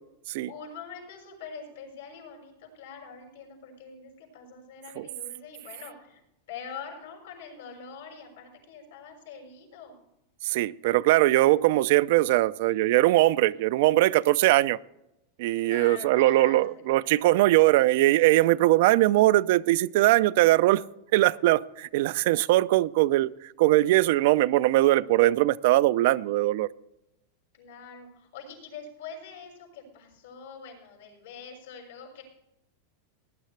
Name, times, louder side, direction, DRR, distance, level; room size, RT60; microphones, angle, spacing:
voice 1, 0.5-6.2 6.5-10.0 15.6-17.5 27.5-32.2, left 6 dB, 85° left, -1 dB, 6.0 m, -44 dB
voice 2, 10.4-14.8 15.4-20.8 21.1-26.7, right 17 dB, 60° right, 17 dB, 0.3 m, -21 dB
18.0 x 10.0 x 3.2 m, 0.86 s
supercardioid pair, 155°, 0 cm